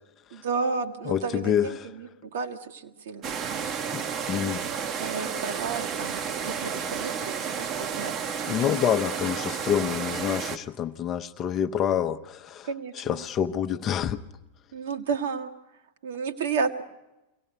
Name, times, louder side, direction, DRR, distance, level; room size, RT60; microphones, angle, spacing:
voice 1, 0.3-3.7 5.0-8.5 12.6-13.2 14.7-15.5 16.0-16.8, right 5 dB, 60° right, 1.4 m, -32 dB
voice 2, 1.1-1.9 3.9-4.6 8.5-12.7 13.0-14.2, left 9 dB, 30° left, 0.7 m, -27 dB
sound 1, 3.2-10.6, right 6 dB, 30° right, 1.0 m, -31 dB
23.5 x 17.5 x 8.1 m
figure-of-eight pair, 90°, 0 cm